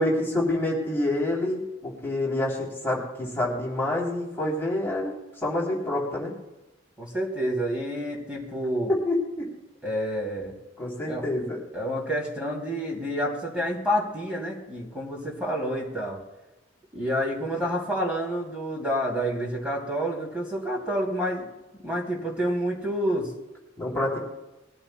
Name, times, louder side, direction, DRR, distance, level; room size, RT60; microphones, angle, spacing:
voice 1, 0.0-6.3 8.9-9.5 10.8-11.6 23.8-24.2, left 1 dB, 10° left, -3 dB, 3.2 m, -27 dB
voice 2, 7.0-8.9 9.8-10.5 11.1-11.2 11.7-16.2 16.9-21.5 21.8-23.3, equal, 5° right, -3 dB, 2.8 m, -28 dB
21.5 x 14.0 x 2.2 m, 1.0 s
head